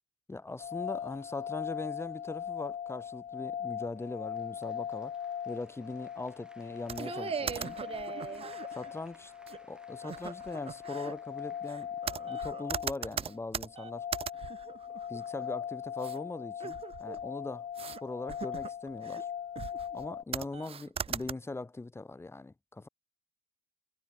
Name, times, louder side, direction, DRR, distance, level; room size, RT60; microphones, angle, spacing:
voice 1, 0.3-5.2 5.5-7.8 8.7-9.3 9.7-12.0 12.2-14.1 15.1-19.3 19.9-22.9, left 2 dB, 10° left, 1.9 m, -41 dB
sound 1, 0.6-20.2, left 8 dB, 35° left, 1.8 m, -40 dB
Applause, 4.0-13.0, right 1 dB, 5° right, 5.4 m, -63 dB
sound 2, 6.9-8.9 9.5-9.6 10.0-11.1 11.7-15.5 16.0-16.2 16.6-17.3 17.8-18.0 18.3-19.2 19.6-20.1 20.3-21.3, right 7 dB, 25° right, 0.7 m, -39 dB
cardioid pair, 145°, 21 cm